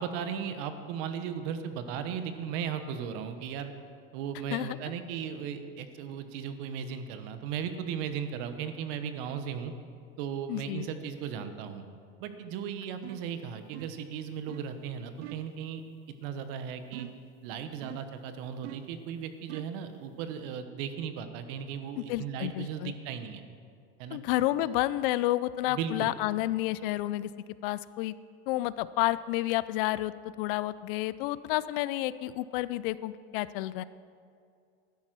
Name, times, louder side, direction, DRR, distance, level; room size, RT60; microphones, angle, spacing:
voice 1, 0.0-3.7 4.1-9.7 10.2-11.8 12.2-15.8 16.2-17.1 17.4-23.4 24.0-24.2 24.6-24.7 25.7-26.1, right 7 dB, 55° right, 9 dB, 1.1 m, -36 dB
voice 2, 10.5-10.9 22.1-22.9 24.1-27.3 27.6-28.1 28.5-30.1 30.4-33.8, left 16 dB, 60° left, 17 dB, 0.5 m, -30 dB
sound 1, 13.0-13.3 13.7-14.1 14.5-14.7 15.2-15.5 16.9-17.3 17.8-18.2 18.6-19.0 19.5-19.8, right 14 dB, 80° right, 0.6 m, -44 dB
12.5 x 9.6 x 6.1 m, 2.3 s
supercardioid pair, 155°, 32 cm